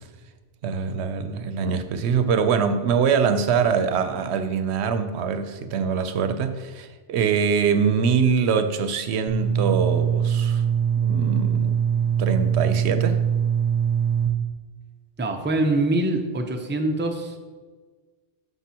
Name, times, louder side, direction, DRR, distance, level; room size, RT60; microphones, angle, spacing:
voice 1, 0.6-10.6 11.0-13.2, right 6 dB, 85° right, 10 dB, 0.9 m, -23 dB
sound 1, 9.3-14.3, right 8 dB, 45° right, 0.9 m, -22 dB
voice 2, 15.2-17.4, right 2 dB, 15° right, 4 dB, 0.5 m, -24 dB
12.0 x 5.4 x 2.8 m, 1.4 s
omnidirectional pair, 1.1 m